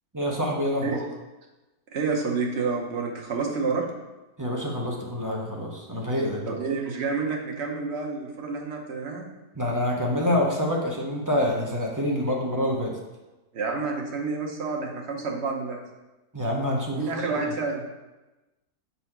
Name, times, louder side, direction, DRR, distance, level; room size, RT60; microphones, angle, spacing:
voice 1, 0.1-1.0 4.4-6.6 9.6-12.9 16.3-17.0, left 1 dB, 20° right, -2 dB, 0.5 m, -26 dB
voice 2, 1.9-3.8 6.5-9.3 13.5-15.8 17.0-17.8, right 4 dB, 50° right, 0 dB, 1.0 m, -29 dB
4.8 x 4.0 x 5.8 m, 1.1 s
omnidirectional pair, 1.7 m